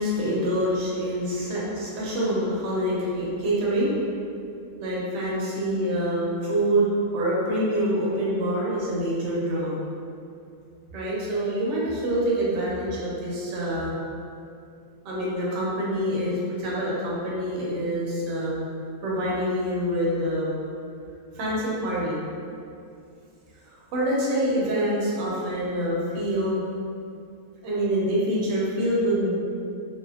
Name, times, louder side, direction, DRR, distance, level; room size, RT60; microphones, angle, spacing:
voice 1, 0.0-3.9 4.8-6.9 7.1-9.8 10.9-14.0 15.0-18.7 19.0-20.5 21.3-22.2 23.9-26.5 27.6-29.3, equal, 60° right, -6 dB, 0.8 m, -26 dB
2.6 x 2.1 x 2.3 m, 2.5 s
omnidirectional pair, 1.7 m